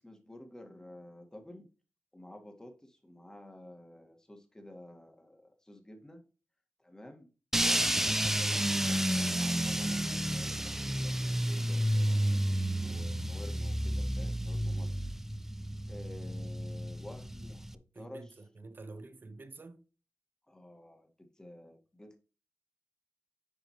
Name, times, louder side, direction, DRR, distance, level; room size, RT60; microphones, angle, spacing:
voice 1, 0.0-1.7 2.1-6.2 6.8-7.3 7.6-10.7 11.0-12.4 12.8-15.0 15.9-18.3 20.5-22.2, left 1 dB, 15° left, 1.9 m, -51 dB
sound 1, 7.5-17.7, right 1 dB, 5° right, 0.6 m, -31 dB
voice 2, 17.9-19.8, right 3 dB, 45° right, 1.1 m, -48 dB
10.0 x 4.9 x 3.1 m
wide cardioid pair, 90°, 5 cm